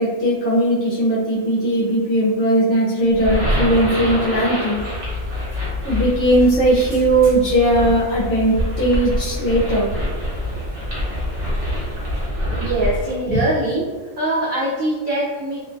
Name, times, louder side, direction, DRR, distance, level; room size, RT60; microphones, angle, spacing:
voice 1, 0.0-4.8 5.8-9.9 13.3-13.4, right 1 dB, 65° left, -7 dB, 0.9 m, -18 dB
sound 1, 3.0-13.2, equal, 50° right, 1.0 m, -26 dB
sound 2, 4.7-12.3, left 3 dB, 25° right, 0.8 m, -30 dB
voice 2, 12.5-13.8 14.2-15.6, right 1 dB, 80° right, -6 dB, 0.4 m, -22 dB
2.5 x 2.2 x 2.5 m, 1.4 s
omnidirectional pair, 1.4 m